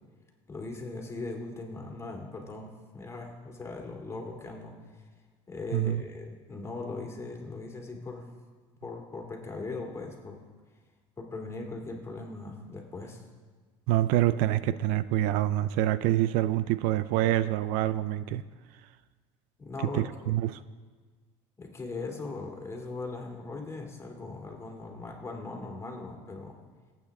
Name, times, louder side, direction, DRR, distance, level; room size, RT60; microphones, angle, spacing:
voice 1, 0.5-5.1 5.5-8.3 8.8-10.4 11.2-13.2 19.6-20.3 21.6-26.6, left 3 dB, 20° left, 0 dB, 2.7 m, -39 dB
voice 2, 13.9-18.4 19.9-20.6, right 14 dB, 75° right, 15 dB, 0.5 m, -26 dB
19.5 x 8.9 x 3.6 m, 1.5 s
supercardioid pair, 105°, 14 cm